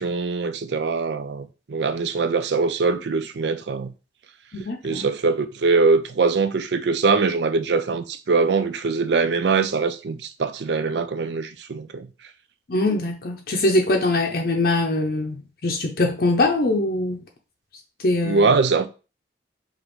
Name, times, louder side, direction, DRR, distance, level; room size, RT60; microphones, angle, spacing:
voice 1, 0.0-3.9 4.8-12.1 18.2-18.9, right 4 dB, 75° right, 0.4 m, -22 dB
voice 2, 4.5-5.1 12.7-17.2 18.0-18.5, left 2 dB, 55° left, 0.6 m, -22 dB
5.1 x 2.5 x 3.0 m
head